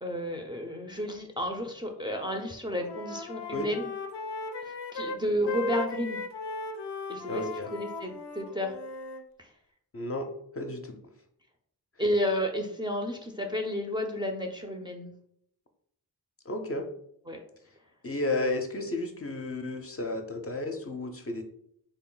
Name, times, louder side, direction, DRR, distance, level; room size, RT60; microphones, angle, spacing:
voice 1, 0.0-3.9 4.6-6.2 7.1-8.8 9.4-9.5 12.0-15.1 17.3-17.4, equal, 10° right, 0 dB, 0.5 m, -32 dB
Wind instrument woodwind instrument, 2.0-2.4 2.7-9.2, left 2 dB, 85° left, 0.5 m, -38 dB
voice 2, 7.3-7.7 9.9-10.3 10.6-11.0 16.5-16.9 18.0-21.4, left 2 dB, 35° left, 4 dB, 0.6 m, -32 dB
3.8 x 2.0 x 3.8 m, 0.70 s
cardioid pair, 60°, 40 cm